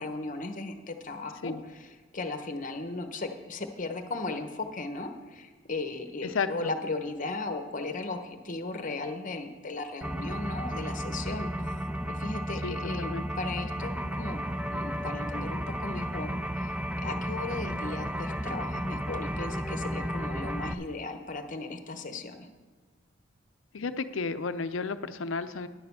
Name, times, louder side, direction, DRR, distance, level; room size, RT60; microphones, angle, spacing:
voice 1, 0.0-11.5 12.1-14.4 14.7-16.7 17.0-22.5, left 3 dB, 40° left, 7 dB, 0.9 m, -36 dB
voice 2, 6.2-6.7 12.6-13.2 23.7-25.7, left 4 dB, 75° left, 11 dB, 0.6 m, -33 dB
sound 1, 10.0-20.7, equal, 5° right, 0.4 m, -33 dB
10.5 x 6.7 x 6.9 m, 1.4 s
head